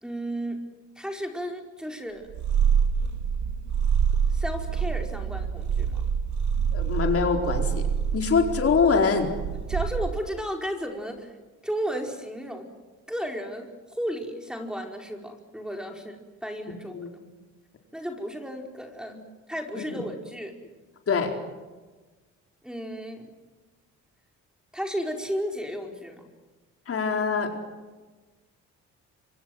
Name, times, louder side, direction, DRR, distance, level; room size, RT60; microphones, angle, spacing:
voice 1, 0.0-0.6 1.0-2.3 4.3-6.0 9.7-11.3 11.6-12.7 13.1-13.7 14.0-16.2 16.4-16.9 17.9-19.2 19.5-20.6 22.6-23.3 24.7-26.3, equal, ahead, 3 dB, 4.8 m, -33 dB
Purr, 2.3-10.4, right 7 dB, 70° right, 2.7 m, -26 dB
voice 2, 6.7-7.9 8.1-9.3 16.9-17.1 19.1-19.2 19.8-20.0 21.1-21.3 26.9-27.5, left 5 dB, 50° left, 3 dB, 4.5 m, -24 dB
26.5 x 25.0 x 8.0 m, 1.3 s
cardioid pair, 90°, 30 cm